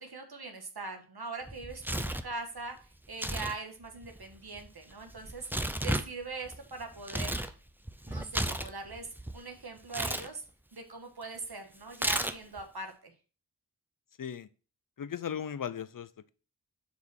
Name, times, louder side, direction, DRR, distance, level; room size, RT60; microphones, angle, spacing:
voice 1, 0.0-5.5 5.8-7.3 8.1-10.4 10.7-13.1, right 3 dB, 65° right, 4 dB, 1.5 m, -41 dB
Tearing, 1.5-2.3 3.1-3.6 3.8-7.5 7.9-9.4 9.9-10.3 11.9-12.6, right 1 dB, 5° right, 0.5 m, -33 dB
voice 2, 15.0-16.3, left 8 dB, 50° left, 16 dB, 0.6 m, -37 dB
6.9 x 4.9 x 4.3 m, 0.36 s
wide cardioid pair, 55°, 41 cm